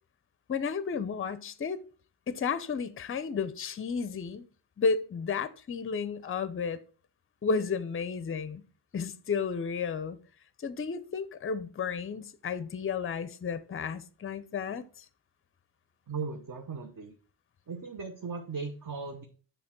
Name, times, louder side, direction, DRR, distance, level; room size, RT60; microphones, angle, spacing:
voice 1, 0.5-1.8 2.3-4.5 4.8-6.8 7.4-8.6 8.9-10.2 10.6-15.1, left 5 dB, 30° left, 0.5 m, -32 dB
voice 2, 16.1-17.2 17.7-19.3, right 4 dB, 45° right, 0.8 m, -37 dB
6.6 x 3.3 x 5.9 m
wide cardioid pair, 120°, 45 cm